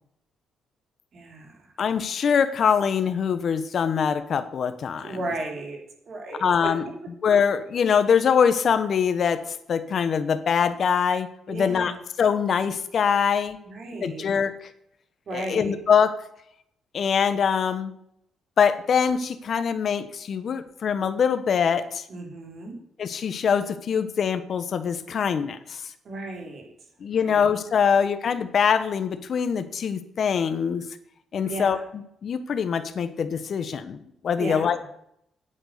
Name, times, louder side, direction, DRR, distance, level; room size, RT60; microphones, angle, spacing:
voice 1, 1.1-1.7 5.0-5.8 6.1-6.7 11.5-12.0 13.6-14.2 15.3-15.8 22.1-22.8 26.0-26.7 27.2-27.4 31.4-31.8 34.4-34.7, right 2 dB, 50° right, 1 dB, 3.7 m, -34 dB
voice 2, 1.8-5.2 6.4-6.8 7.2-11.9 12.2-13.6 14.0-14.7 15.3-16.1 16.9-17.9 18.6-22.1 23.0-25.9 27.0-30.9 31.3-31.8 32.2-34.9, left 7 dB, 55° left, 11 dB, 1.1 m, -23 dB
9.0 x 9.0 x 6.8 m, 0.74 s
cardioid pair, 90°, 0 cm